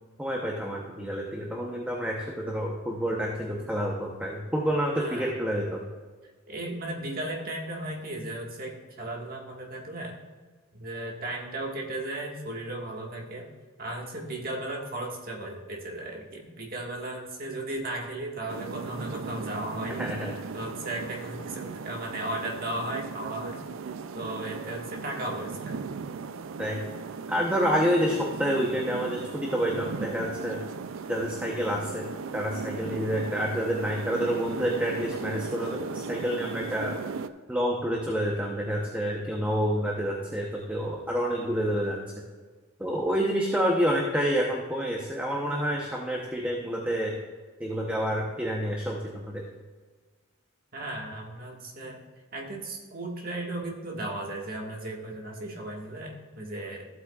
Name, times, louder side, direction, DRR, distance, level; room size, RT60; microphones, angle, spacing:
voice 1, 0.2-5.8 20.0-20.3 26.6-26.8 27.3-30.6 31.1-32.1 32.3-37.0 37.5-42.0 42.8-47.2 47.6-49.4, equal, 5° right, -1 dB, 0.8 m, -28 dB
voice 2, 5.0-5.3 6.5-10.1 10.7-13.5 13.8-20.0 20.5-23.6 24.1-25.7 50.7-52.0 52.3-56.9, right 1 dB, 45° right, -1 dB, 1.7 m, -35 dB
sound 1, 18.5-37.3, right 5 dB, 75° right, 0.4 m, -37 dB
14.5 x 8.2 x 2.4 m, 1.4 s
head